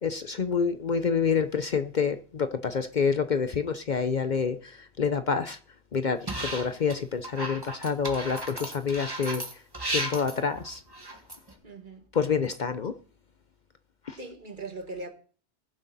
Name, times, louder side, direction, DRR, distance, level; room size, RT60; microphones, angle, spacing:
voice 1, 0.0-5.6 5.9-9.4 9.9-10.8 12.1-12.9 14.1-14.2, left 6 dB, 50° left, 0.7 m, -27 dB
sound 1, 6.3-7.0 7.2-11.5, right 1 dB, 20° right, 1.9 m, -34 dB
voice 2, 11.6-12.1 14.2-15.1, right 2 dB, 50° right, 2.2 m, -40 dB
21.0 x 7.9 x 4.1 m
omnidirectional pair, 1.1 m